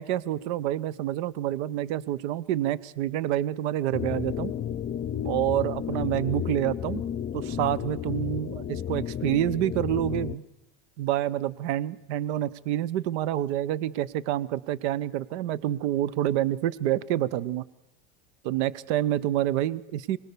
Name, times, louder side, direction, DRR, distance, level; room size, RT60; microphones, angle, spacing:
voice 1, 0.0-4.5 5.2-7.0 7.3-10.4 11.0-17.6 18.4-20.2, right 13 dB, 75° right, 18 dB, 1.0 m, -28 dB
sound 1, 3.9-10.4, left 9 dB, 30° left, 0.8 m, -32 dB
25.5 x 20.0 x 6.9 m, 0.88 s
supercardioid pair, 120°, 34 cm